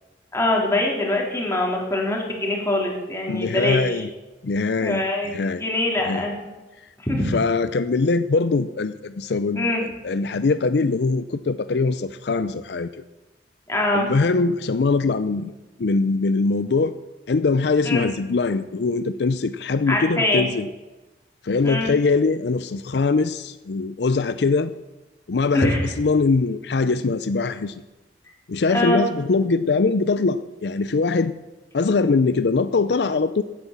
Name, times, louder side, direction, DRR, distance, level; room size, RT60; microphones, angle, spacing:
voice 1, 0.3-4.1 4.8-6.6 7.0-7.4 9.5-9.8 13.7-14.1 17.8-18.1 19.9-20.5 21.6-21.9 25.5-25.9 28.7-29.0, left 1 dB, 15° left, -1 dB, 3.5 m, -23 dB
voice 2, 3.3-4.1 4.4-5.6 6.1-6.2 6.8-6.9 7.3-12.9 13.9-15.5 15.8-16.9 17.3-20.7 21.4-24.7 25.3-27.8 28.5-31.3 31.7-33.4, left 4 dB, 65° left, 13 dB, 0.5 m, -22 dB
16.0 x 9.5 x 7.3 m, 1.1 s
head